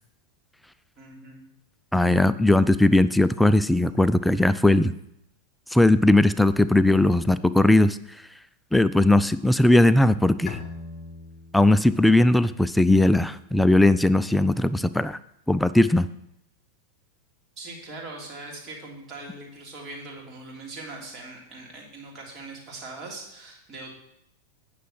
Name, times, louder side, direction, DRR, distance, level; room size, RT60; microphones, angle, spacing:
voice 1, 1.0-1.4 17.6-23.9, right 2 dB, 30° right, -2 dB, 3.0 m, -41 dB
voice 2, 1.9-4.9 5.7-8.0 8.7-10.6 11.5-15.2 15.5-16.1, left 1 dB, 5° left, 15 dB, 0.3 m, -19 dB
Bowed string instrument, 10.5-13.9, left 4 dB, 25° left, 1.4 m, -42 dB
9.2 x 6.3 x 6.2 m, 0.77 s
figure-of-eight pair, 90°, 0 cm